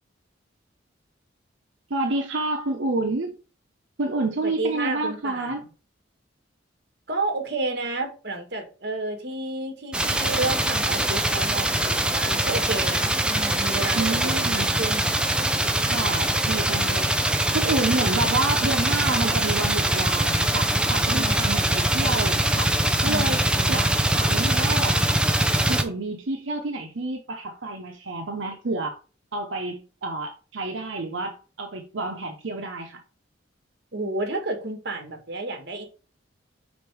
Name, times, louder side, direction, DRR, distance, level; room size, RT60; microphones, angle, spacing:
voice 1, 1.9-3.3 4.0-5.6 13.9-14.7 15.8-17.3 17.5-22.7 23.0-23.4 23.7-25.0 25.7-29.0 29.3-33.0, right 2 dB, 80° right, 0.9 m, -29 dB
voice 2, 4.4-5.6 7.1-15.1 21.1-21.8 23.0-23.9 33.9-35.9, right 2 dB, 60° right, 1.4 m, -31 dB
sound 1, 9.9-25.8, right 1 dB, 5° right, 0.5 m, -23 dB
5.2 x 4.4 x 4.6 m
head